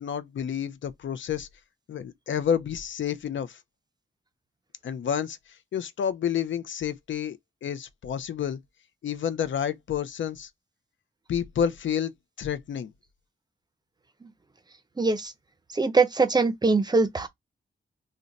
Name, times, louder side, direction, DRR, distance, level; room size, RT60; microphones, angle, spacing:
voice 1, 0.0-1.5 1.9-3.6 4.8-5.4 5.7-8.6 9.0-10.5 11.3-12.1 12.4-12.9, left 8 dB, 90° left, 0.4 m, -29 dB
voice 2, 15.0-15.3 15.7-17.3, right 3 dB, 20° right, 0.4 m, -22 dB
2.5 x 2.1 x 3.9 m
wide cardioid pair, 140°, 19 cm